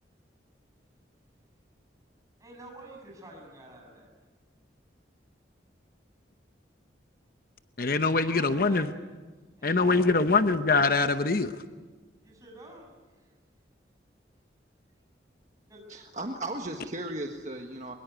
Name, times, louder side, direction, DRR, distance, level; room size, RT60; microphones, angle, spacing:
voice 1, 2.4-4.1 8.2-9.0 9.6-10.4 12.2-13.3 15.7-15.8, right 1 dB, 20° right, 0 dB, 7.2 m, -48 dB
voice 2, 7.8-8.9 9.6-11.5, left 3 dB, 50° left, 9 dB, 0.9 m, -23 dB
voice 3, 15.9-18.0, right 1 dB, 40° right, 3 dB, 1.5 m, -36 dB
22.5 x 22.5 x 9.3 m, 1.4 s
head